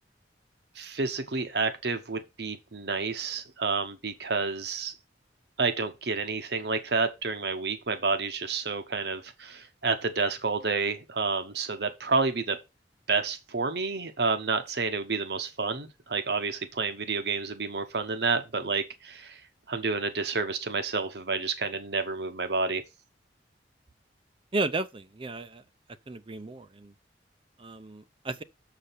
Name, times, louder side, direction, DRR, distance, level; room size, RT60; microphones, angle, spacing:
voice 1, 0.8-4.9 5.6-12.6 13.1-19.4 19.7-22.8, right 4 dB, 65° right, 1.0 m, -29 dB
voice 2, 24.5-25.6 26.1-26.9 27.6-28.4, right 2 dB, 30° right, 0.6 m, -33 dB
6.7 x 5.0 x 5.7 m
head